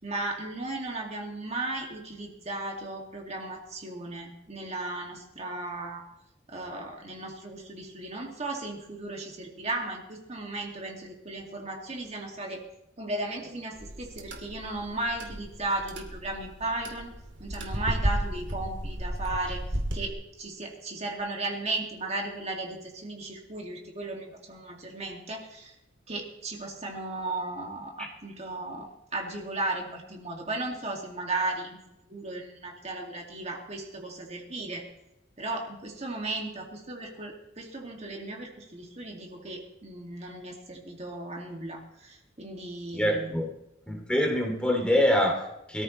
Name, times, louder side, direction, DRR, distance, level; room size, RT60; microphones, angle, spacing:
voice 1, 0.0-6.0 6.5-12.6 13.0-17.1 17.4-19.6 19.9-25.8 26.1-31.8 32.1-34.8 35.4-43.4, right 2 dB, 35° right, 0 dB, 2.3 m, -35 dB
sound 1, 13.7-20.1, equal, 75° right, 2.6 m, -34 dB
voice 2, 42.9-43.5 43.9-45.8, equal, 5° left, 0 dB, 2.6 m, -25 dB
23.0 x 14.0 x 3.2 m, 0.87 s
head